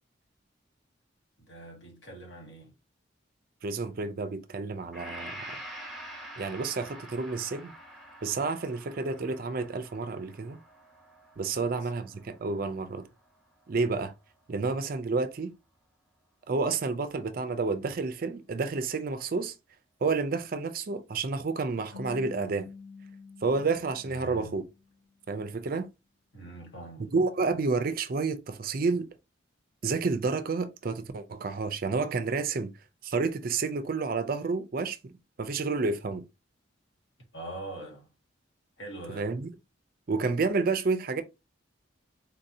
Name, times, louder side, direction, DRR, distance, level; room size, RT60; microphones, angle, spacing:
voice 1, 1.4-2.7 11.5-11.9 24.0-24.6 26.3-27.1 37.3-38.1 38.8-39.3, right 2 dB, 65° left, 1.5 m, -43 dB
voice 2, 3.6-5.6 6.4-7.7 8.2-10.6 11.4-13.1 13.7-14.1 14.5-15.5 16.5-19.5 20.0-22.7 23.4-24.6 25.3-25.9 27.0-29.1 29.8-32.7 33.0-35.1 35.4-36.2 39.1-39.5 40.1-41.2, right 4 dB, 45° right, 0.4 m, -30 dB
Gong, 4.9-13.0, right 1 dB, ahead, 1.0 m, -46 dB
sound 1, 21.9-25.1, left 4 dB, 85° left, 2.1 m, -48 dB
3.9 x 2.7 x 2.7 m
head